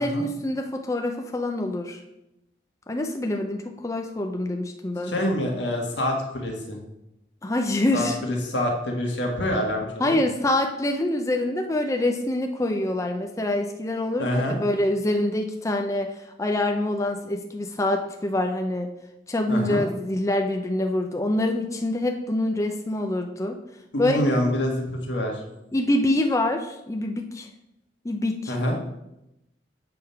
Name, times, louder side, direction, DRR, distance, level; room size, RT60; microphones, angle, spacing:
voice 1, 0.0-2.0 2.9-5.1 7.4-8.2 10.0-16.1 16.4-18.9 19.3-23.6 24.0-24.2 25.7-27.5 28.0-28.5, left 1 dB, 15° left, 4 dB, 0.4 m, -25 dB
voice 2, 5.0-6.8 7.9-10.2 14.2-14.6 19.5-19.8 23.9-25.4 28.5-28.8, left 1 dB, 90° left, 1 dB, 1.5 m, -26 dB
7.6 x 3.6 x 5.5 m, 0.88 s
head